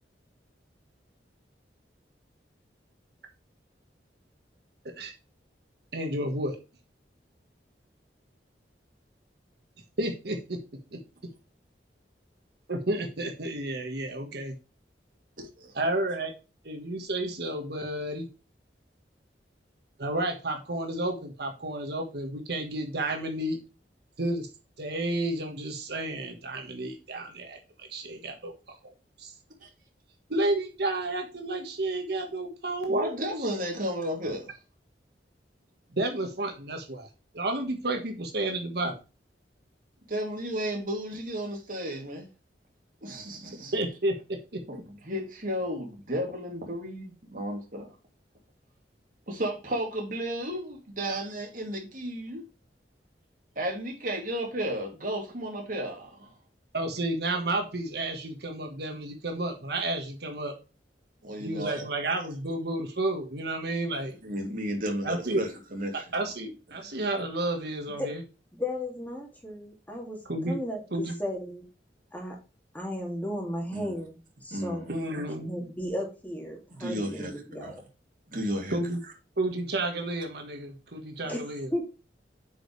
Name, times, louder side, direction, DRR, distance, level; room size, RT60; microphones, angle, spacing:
voice 1, 5.9-6.6 10.0-10.4 12.7-14.5 15.7-16.3 16.6-18.3 20.0-23.6 24.2-24.5 24.8-28.5 28.8-28.9 29.2-29.3 30.3-33.2 35.9-37.1 37.3-39.0 43.7-44.6 56.7-60.5 61.4-64.2 65.0-65.4 66.1-68.2 70.3-70.6 70.9-71.2 74.9-75.6 78.7-79.0 79.4-81.7, right 1 dB, 65° right, 1.5 m, -31 dB
voice 2, 15.4-15.7 29.6-29.7 32.9-34.5 40.1-42.3 43.0-43.7 44.7-47.9 49.3-52.4 53.6-56.3 61.2-61.9 64.2-66.0 66.7-66.8 73.7-73.9 74.5-75.0 76.7-77.3 77.6-77.8 78.3-78.8, equal, 50° right, 2.9 m, -33 dB
voice 3, 68.5-70.2 70.5-71.7 72.1-72.4 72.7-74.1 74.4-74.9 75.5-77.8 81.2-81.4 81.7-81.8, left 1 dB, 10° left, 2.3 m, -34 dB
8.7 x 5.2 x 3.3 m
head